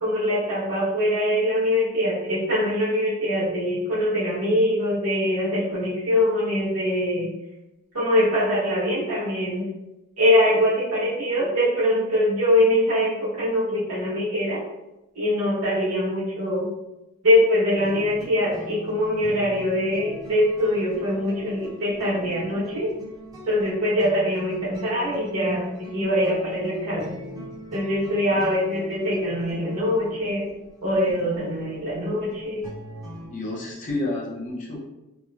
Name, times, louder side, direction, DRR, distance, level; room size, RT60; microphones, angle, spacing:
voice 1, 0.0-7.3 7.9-9.7 10.2-14.6 15.1-16.7 17.2-22.9 23.5-27.2 27.7-30.5 30.8-32.7, left 1 dB, 85° right, -7 dB, 1.3 m, -23 dB
sound 1, 17.7-33.3, left 1 dB, 15° right, 0.8 m, -40 dB
voice 2, 33.3-34.8, left 2 dB, 35° left, -3 dB, 0.6 m, -30 dB
3.1 x 2.1 x 2.4 m, 0.94 s
head